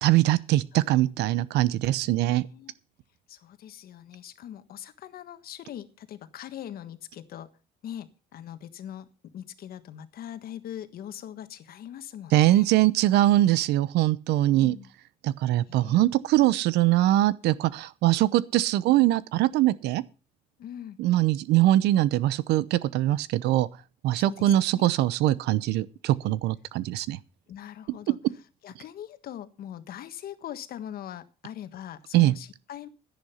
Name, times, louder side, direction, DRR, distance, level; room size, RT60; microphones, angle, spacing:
voice 1, 0.0-2.5 12.3-14.8 15.2-20.0 21.0-23.7 24.0-27.2 32.1-32.3, right 15 dB, 85° right, 0.8 m, -22 dB
voice 2, 1.8-2.7 3.3-7.5 7.8-12.7 14.5-14.9 15.7-16.0 19.0-19.2 20.6-21.0 24.1-24.9 27.5-28.2 28.6-32.9, left 10 dB, 60° left, 1.5 m, -42 dB
11.5 x 10.5 x 5.7 m
cardioid pair, 110°, 17 cm